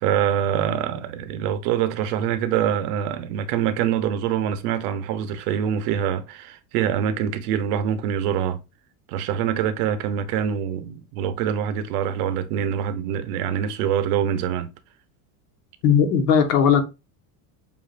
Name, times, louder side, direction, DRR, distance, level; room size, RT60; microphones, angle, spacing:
voice 1, 0.0-8.6 9.1-14.7, right 9 dB, 75° right, 0.9 m, -25 dB
voice 2, 15.8-16.8, left 7 dB, 90° left, 1.4 m, -17 dB
7.2 x 2.6 x 2.5 m
cardioid pair, 145°, 46 cm